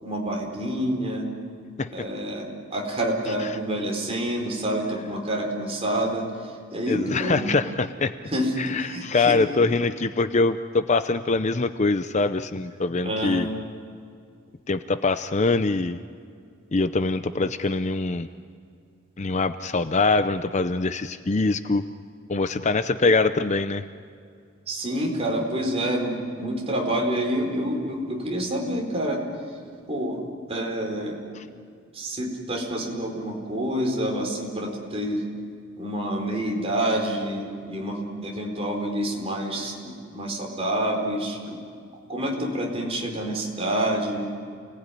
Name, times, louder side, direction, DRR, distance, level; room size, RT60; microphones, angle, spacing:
voice 1, 0.0-1.3 1.9-6.3 6.7-7.4 8.3-8.5 8.8-9.4 13.0-13.5 24.7-29.2 29.9-30.2 30.5-31.2 31.9-35.2 35.8-41.6 42.1-44.3, right 1 dB, 30° right, 0 dB, 4.4 m, -27 dB
voice 2, 6.9-8.1 8.6-13.5 14.7-16.0 16.7-18.3 19.2-21.8 22.3-23.8 31.3-31.5, left 3 dB, 35° left, 11 dB, 0.6 m, -23 dB
29.0 x 19.0 x 9.9 m, 2.3 s
head